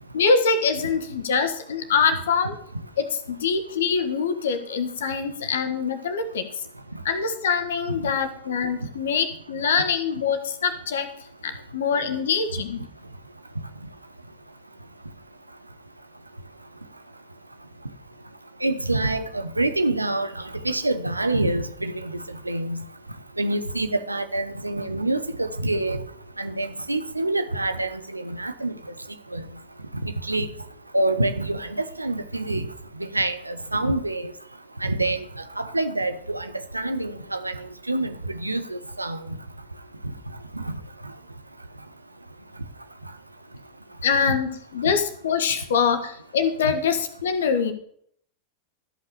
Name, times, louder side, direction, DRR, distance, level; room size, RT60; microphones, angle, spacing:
voice 1, 0.1-2.5 3.0-6.4 7.0-11.1 11.4-12.8 44.0-47.7, left 5 dB, 60° left, 10 dB, 1.5 m, -24 dB
voice 2, 18.6-20.3 20.6-22.1 22.5-22.8 23.4-26.0 26.4-28.7 29.3-29.4 30.0-30.5 30.9-32.7 33.0-34.3 34.8-35.2 35.6-36.4 36.7-37.6 37.9-38.1 38.4-39.2 40.5-40.6, right 2 dB, 85° right, 10 dB, 1.0 m, -26 dB
13.5 x 5.8 x 7.0 m, 0.66 s
figure-of-eight pair, 90°, 0 cm